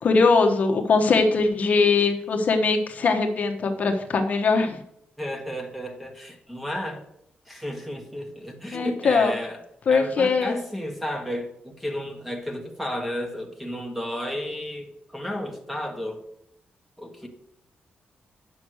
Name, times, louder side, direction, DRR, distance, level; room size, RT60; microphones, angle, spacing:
voice 1, 0.0-4.8 8.7-9.3 9.9-10.5, left 4 dB, 45° left, 4 dB, 1.1 m, -21 dB
voice 2, 5.2-7.0 7.5-9.6 9.9-16.2 17.0-17.3, equal, 5° right, 4 dB, 1.5 m, -32 dB
9.4 x 6.4 x 6.3 m, 0.75 s
wide cardioid pair, 170°, 3 cm